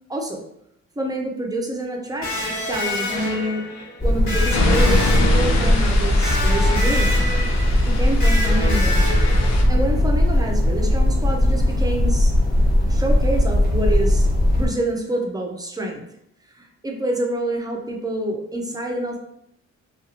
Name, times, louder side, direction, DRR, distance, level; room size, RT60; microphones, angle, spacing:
voice 1, 0.1-0.4 1.0-3.6 4.0-7.2 7.8-9.0 9.7-12.3 12.9-14.3 14.6-16.0 16.5-19.2, right 1 dB, 15° right, 1 dB, 0.5 m, -27 dB
Electric guitar, 2.2-9.9, left 1 dB, 85° left, 1.5 m, -28 dB
sound 1, 4.0-14.7, left 1 dB, 30° left, 1.0 m, -18 dB
sound 2, 4.5-9.6, left 3 dB, 65° left, 0.6 m, -27 dB
2.6 x 2.4 x 2.8 m, 0.76 s
cardioid pair, 90°, 30 cm